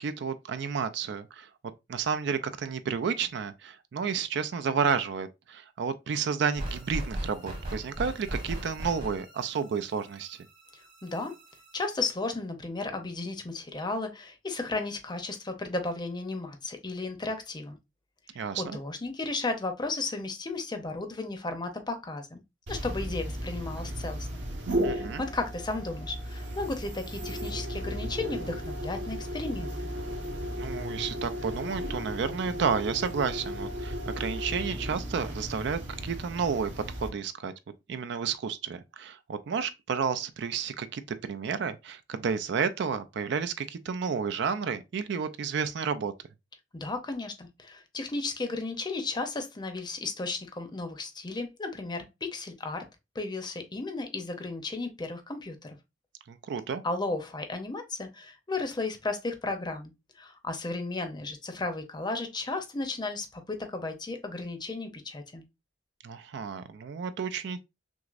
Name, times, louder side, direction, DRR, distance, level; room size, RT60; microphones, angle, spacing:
voice 1, 0.0-1.5 1.9-10.5 18.4-18.8 24.8-25.2 30.6-36.7 37.0-37.5 37.9-46.1 56.3-56.8 66.0-67.6, right 6 dB, 65° right, 0.4 m, -31 dB
sound 1, 6.5-11.9, right 1 dB, 50° right, 1.4 m, -38 dB
voice 2, 11.0-11.3 11.7-17.8 18.5-22.4 22.7-24.4 24.9-29.7 46.7-52.8 53.1-55.8 56.8-65.4, left 3 dB, 25° left, 0.6 m, -34 dB
sound 2, 22.7-37.1, equal, 90° right, 1.1 m, -35 dB
6.0 x 2.0 x 2.4 m
head